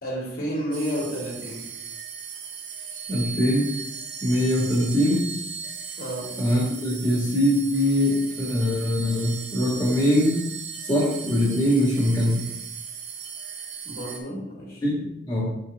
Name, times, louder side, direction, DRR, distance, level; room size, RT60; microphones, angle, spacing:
voice 1, 0.0-1.7 6.0-6.3 13.8-14.8, equal, 50° left, -4 dB, 2.5 m, -31 dB
sound 1, 0.7-14.2, right 6 dB, 60° right, 1.0 m, -37 dB
voice 2, 3.1-3.7 4.2-5.2 6.4-10.4 10.8-12.4 14.8-15.5, equal, 20° left, -8 dB, 1.9 m, -22 dB
6.9 x 5.7 x 3.6 m, 0.79 s
head